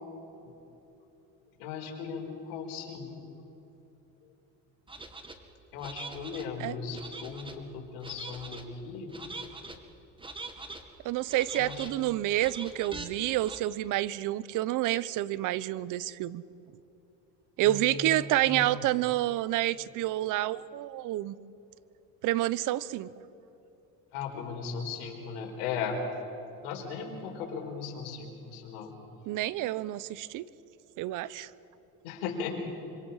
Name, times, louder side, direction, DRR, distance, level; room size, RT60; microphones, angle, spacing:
voice 1, 1.6-3.2 5.7-9.1 11.5-11.9 17.6-18.6 24.1-26.0 26.6-29.0 32.0-32.7, left 5 dB, 85° left, 2 dB, 4.7 m, -37 dB
sound 1, 4.9-5.3 5.8-6.5 6.9-7.6 8.0-8.6 9.1-9.8 10.2-10.8 11.3-11.9 12.4-13.1 13.4-13.6, right 3 dB, 15° right, 2.1 m, -43 dB
voice 2, 11.0-16.4 17.6-21.4 22.2-23.1 29.3-30.5 31.0-31.5, right 15 dB, 60° right, 19 dB, 0.8 m, -29 dB
26.0 x 26.0 x 5.7 m, 2.9 s
supercardioid pair, 105°, 35 cm